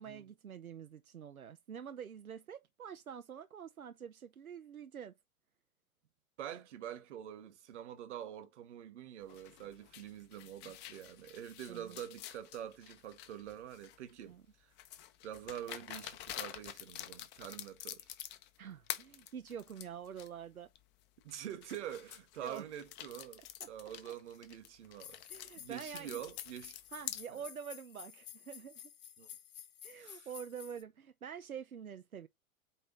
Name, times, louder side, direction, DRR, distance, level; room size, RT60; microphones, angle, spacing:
voice 1, 0.0-5.1 11.7-12.0 14.3-14.4 18.6-20.7 22.4-22.6 25.3-26.2 26.9-28.9 29.8-32.3, right 8 dB, 85° right, 0.7 m, -47 dB
voice 2, 6.4-14.7 15.2-18.1 21.2-25.2 25.5-26.8 27.3-27.4 29.2-29.4 29.9-30.3, right 10 dB, 55° right, 1.5 m, -46 dB
sound 1, 9.3-14.1 14.8-18.6 18.9-20.3 20.8-20.9 21.3-27.2, left 12 dB, 25° left, 0.7 m, -48 dB
sound 2, 25.0-30.8, left 10 dB, 60° left, 1.1 m, -52 dB
8.6 x 3.1 x 3.9 m
figure-of-eight pair, 105°, 42 cm